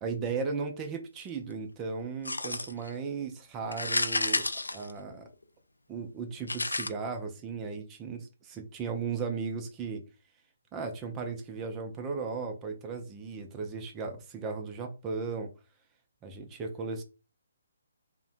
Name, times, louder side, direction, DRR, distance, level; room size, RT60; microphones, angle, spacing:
voice 1, 0.0-4.5 4.7-5.3 5.9-10.0 10.7-15.5 16.2-17.0, right 5 dB, 20° right, 5 dB, 0.4 m, -36 dB
sound 1, 2.2-2.9 3.7-5.4 6.5-6.9, left 2 dB, 90° left, 0.3 m, -31 dB
2.6 x 2.1 x 2.5 m, 0.31 s
figure-of-eight pair, 140°, 0 cm